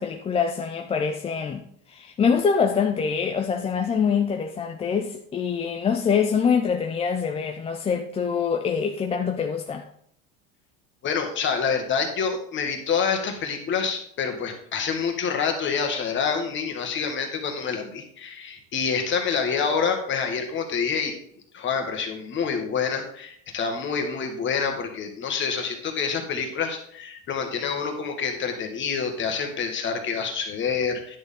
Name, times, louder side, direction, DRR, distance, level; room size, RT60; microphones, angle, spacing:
voice 1, 0.0-1.6 1.9-9.8, left 6 dB, 15° left, 0.5 m, -24 dB
voice 2, 11.0-21.1 21.5-31.2, left 6 dB, 35° left, 1.7 m, -27 dB
10.5 x 6.4 x 3.7 m
supercardioid pair, 130°, 35 cm